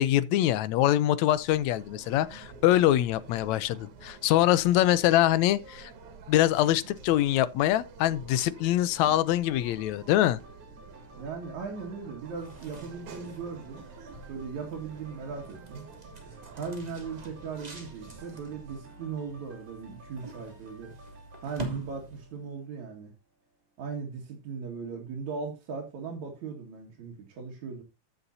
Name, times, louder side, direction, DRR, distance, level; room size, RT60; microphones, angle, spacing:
voice 1, 0.0-5.9 6.3-10.4, left 13 dB, 80° left, 1.9 m, -24 dB
sound 1, 1.3-18.8, right 4 dB, 90° right, 3.1 m, -49 dB
sound 2, 9.2-23.0 23.4-23.5, right 2 dB, 50° right, 4.4 m, -55 dB
voice 2, 11.2-13.8 14.3-15.9 16.5-20.9 21.4-23.1 23.8-27.8, right 5 dB, 75° right, 3.3 m, -38 dB
sound 3, 12.2-22.5, right 2 dB, 15° right, 2.3 m, -45 dB
14.5 x 7.1 x 2.7 m
omnidirectional pair, 3.4 m